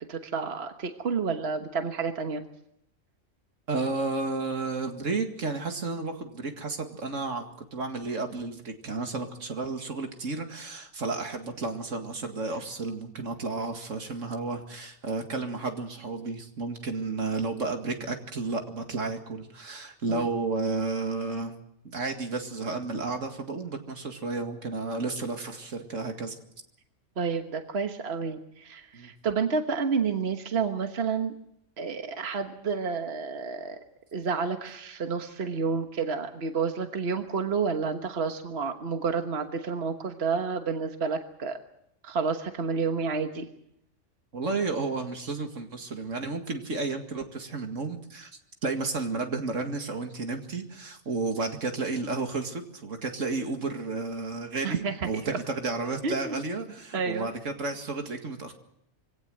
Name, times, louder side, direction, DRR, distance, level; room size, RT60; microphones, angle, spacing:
voice 1, 0.1-2.4 20.1-20.3 27.2-31.3 31.8-33.8 34.1-41.6 42.0-43.5 54.6-55.4 56.0-56.4 56.9-57.3, right 5 dB, 55° right, 6 dB, 1.5 m, -30 dB
voice 2, 3.7-21.5 21.8-26.4 28.9-29.1 44.3-48.3 48.6-58.5, right 3 dB, 80° right, 5 dB, 2.4 m, -32 dB
23.5 x 17.5 x 7.8 m, 0.76 s
omnidirectional pair, 1.3 m